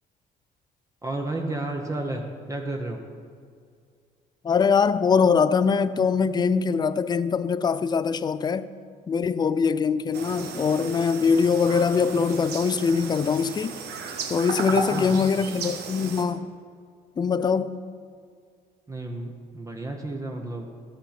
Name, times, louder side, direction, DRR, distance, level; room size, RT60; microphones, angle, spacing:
voice 1, 1.0-3.0 14.7-15.2 18.9-20.7, right 2 dB, 20° right, 1.0 m, -32 dB
voice 2, 4.4-8.7 9.1-13.8 14.3-16.5 17.2-17.8, left 5 dB, 25° left, 0.4 m, -22 dB
sound 1, 10.1-16.3, right 5 dB, 75° right, 1.2 m, -34 dB
13.0 x 7.0 x 5.9 m
cardioid pair, 110°, 17 cm